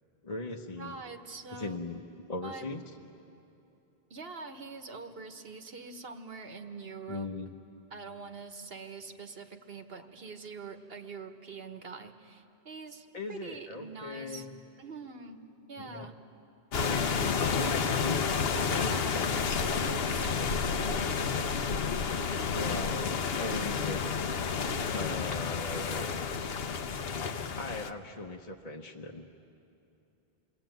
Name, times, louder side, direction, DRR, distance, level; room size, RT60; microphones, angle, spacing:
voice 1, 0.2-1.0 1.5-2.8 7.1-7.5 9.9-10.1 13.1-14.6 15.8-16.1 16.7-18.3 22.5-24.3 24.8-26.1 27.5-29.3, left 2 dB, 40° left, 1 dB, 1.1 m, -39 dB
voice 2, 0.8-1.8 2.4-2.7 4.1-7.3 7.9-14.5 14.8-15.4 15.7-16.1 17.3-17.8 18.5-21.1, right 4 dB, 70° right, 6 dB, 1.6 m, -44 dB
sound 1, 16.7-27.9, left 6 dB, 70° left, 1.1 m, -30 dB
28.5 x 21.5 x 9.2 m, 2.9 s
omnidirectional pair, 1.1 m